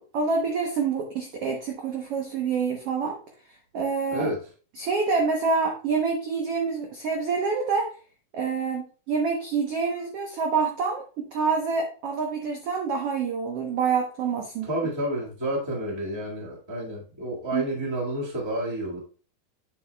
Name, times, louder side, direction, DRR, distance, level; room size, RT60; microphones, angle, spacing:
voice 1, 0.1-3.2 3.7-4.3 4.8-7.9 8.3-14.7 17.5-17.6, right 5 dB, 80° right, 1 dB, 1.3 m, -27 dB
voice 2, 14.6-19.0, right 1 dB, 40° right, -3 dB, 0.3 m, -30 dB
8.6 x 7.5 x 2.2 m, 0.38 s
omnidirectional pair, 4.2 m